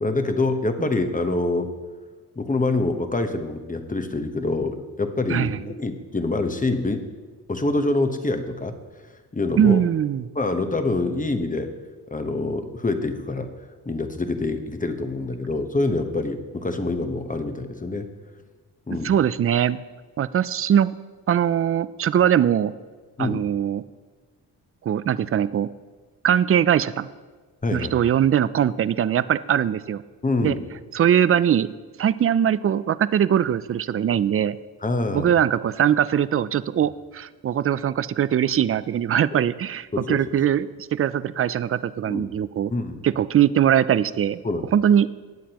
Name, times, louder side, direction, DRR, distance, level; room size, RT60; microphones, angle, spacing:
voice 1, 0.0-1.7 2.4-7.0 7.5-8.8 9.3-9.9 10.3-11.8 12.1-13.5 13.9-18.1 18.9-19.1 23.2-23.4 27.6-28.1 30.2-30.7 34.8-35.3 39.9-40.4 42.1-42.4 42.7-43.0 44.4-44.6, left 2 dB, 20° left, 7 dB, 1.0 m, -26 dB
voice 2, 9.6-10.3 19.0-19.8 20.2-20.9 21.3-22.7 23.2-23.8 24.8-25.7 26.2-27.1 27.7-30.0 30.4-30.5 30.9-31.7 32.0-34.6 35.1-42.7 43.0-44.4 44.7-45.1, right 9 dB, 35° right, 17 dB, 0.4 m, -21 dB
18.5 x 7.4 x 3.0 m, 1.4 s
cardioid pair, 75°, 39 cm